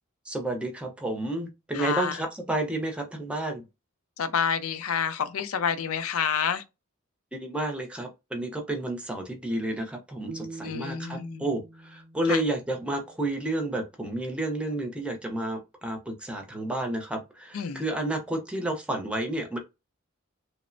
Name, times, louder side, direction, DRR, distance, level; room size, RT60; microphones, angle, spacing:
voice 1, 0.3-3.7 7.3-19.6, right 1 dB, 5° right, 0.5 m, -31 dB
voice 2, 1.7-2.2 4.2-6.6 10.6-11.4 12.3-12.4 17.5-17.8, left 7 dB, 85° left, 0.5 m, -28 dB
sound 1, 10.3-13.4, right 3 dB, 70° right, 0.6 m, -44 dB
3.0 x 2.0 x 2.5 m
head